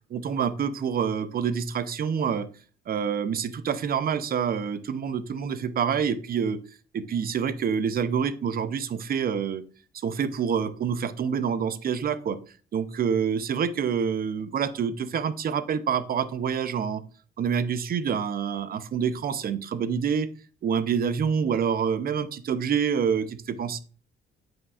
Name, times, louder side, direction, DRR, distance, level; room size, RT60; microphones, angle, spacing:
voice 1, 0.1-2.5 2.9-6.6 6.9-9.6 10.0-12.4 12.7-17.0 17.4-20.3 20.6-23.8, right 7 dB, 50° right, 14 dB, 0.6 m, -27 dB
7.8 x 5.3 x 2.3 m, 0.40 s
cardioid pair, 90°, 20 cm